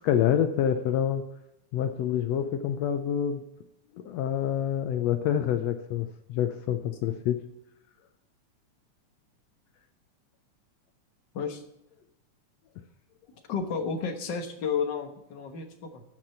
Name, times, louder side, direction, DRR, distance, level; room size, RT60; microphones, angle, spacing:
voice 1, 0.0-1.2 1.7-3.4 4.0-7.4, left 9 dB, 75° left, 8 dB, 1.6 m, -27 dB
voice 2, 13.5-16.0, left 6 dB, 50° left, 4 dB, 1.4 m, -32 dB
14.0 x 6.1 x 4.4 m, 0.86 s
omnidirectional pair, 3.4 m